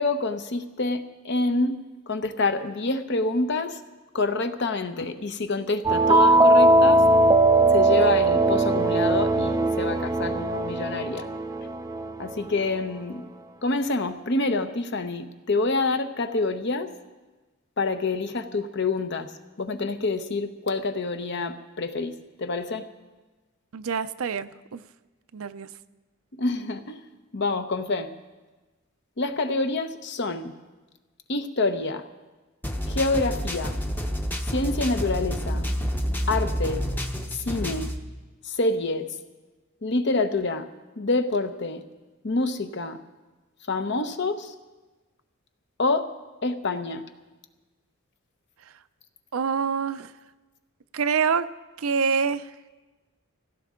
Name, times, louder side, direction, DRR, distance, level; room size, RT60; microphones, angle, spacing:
voice 1, 0.0-3.8 4.1-7.0 7.7-11.3 12.2-13.2 13.6-16.9 17.8-19.3 19.6-22.9 26.4-27.0 27.3-28.1 29.2-30.5 31.3-32.0 32.9-33.8 34.5-35.7 36.3-36.9 37.3-38.0 38.4-39.1 39.8-40.7 41.0-41.8 42.2-43.0 43.7-44.5 45.8-46.1 46.4-47.1, left 3 dB, 55° left, 8 dB, 0.8 m, -27 dB
sound 1, 5.9-12.3, right 2 dB, 15° right, 0.4 m, -20 dB
voice 2, 23.7-24.8 25.3-25.7 49.3-50.1 50.9-51.5 51.8-52.5, right 6 dB, 75° right, 12 dB, 0.5 m, -26 dB
sound 2, 32.6-38.0, equal, 10° left, 0.8 m, -29 dB
17.5 x 16.0 x 3.7 m, 1.2 s
head